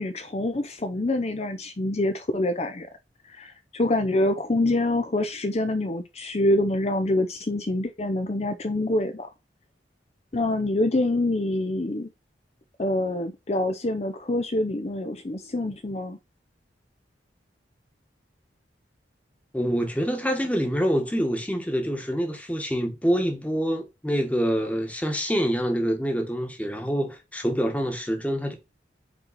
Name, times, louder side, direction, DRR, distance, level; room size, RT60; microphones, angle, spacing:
voice 1, 0.0-2.9 3.2-9.3 10.3-12.1 12.8-16.2, left 1 dB, 35° left, 0.6 m, -26 dB
voice 2, 19.5-28.5, equal, 10° left, 1.3 m, -26 dB
5.3 x 4.5 x 3.9 m
head